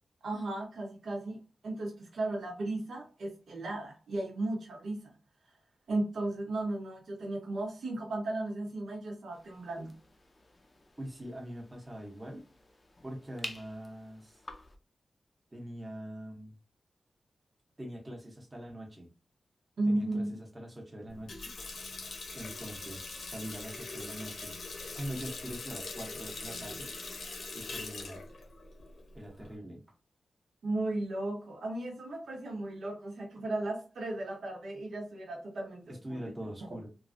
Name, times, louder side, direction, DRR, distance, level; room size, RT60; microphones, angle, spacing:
voice 1, 0.2-1.4 1.6-5.1 5.9-10.0 19.8-20.4 30.6-36.2, right 2 dB, 85° right, 0.8 m, -35 dB
sound 1, 9.3-14.8, left 2 dB, 20° left, 0.4 m, -49 dB
voice 2, 11.0-12.4 13.0-14.4 15.5-16.6 17.8-19.1 19.9-21.5 22.3-24.5 24.9-26.9 27.5-28.3 29.1-29.8 35.9-36.9, equal, 20° right, 0.7 m, -43 dB
Water tap faucet, 21.1-29.5, left 3 dB, 85° left, 0.8 m, -42 dB
3.1 x 2.4 x 2.5 m
wide cardioid pair, 180°, 0 cm